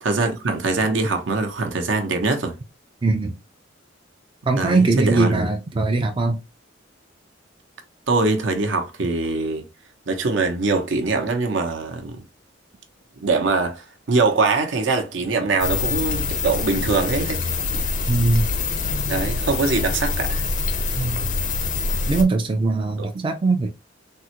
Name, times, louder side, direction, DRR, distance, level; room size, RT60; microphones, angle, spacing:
voice 1, 0.0-2.5 4.6-5.5 8.1-9.6 10.1-12.2 13.2-13.8 14.1-17.4 19.1-20.4, right 3 dB, 70° right, 0.7 m, -22 dB
voice 2, 3.0-3.3 4.5-6.4 18.1-18.5 21.0-21.3 22.1-23.7, right 3 dB, 25° right, 0.3 m, -21 dB
sound 1, 15.6-22.2, left 3 dB, 40° left, 0.5 m, -25 dB
3.5 x 2.1 x 2.8 m
head